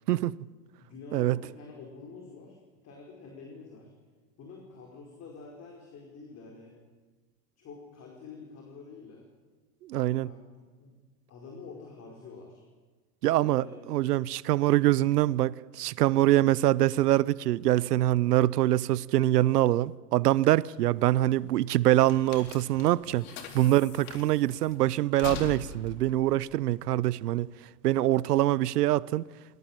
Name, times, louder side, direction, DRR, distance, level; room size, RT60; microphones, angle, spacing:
voice 1, 0.7-2.6 2.8-3.9 4.4-6.8 7.6-9.3 10.2-10.9 11.3-12.6 13.4-13.8, left 4 dB, 30° left, 4.9 m, -47 dB
voice 2, 9.8-10.3 13.2-23.3 23.5-27.5 27.8-29.2, right 15 dB, 80° right, 0.8 m, -24 dB
sound 1, 20.7-27.5, left 5 dB, 65° left, 4.0 m, -43 dB
22.0 x 19.0 x 9.1 m
hypercardioid pair, 120°, 47 cm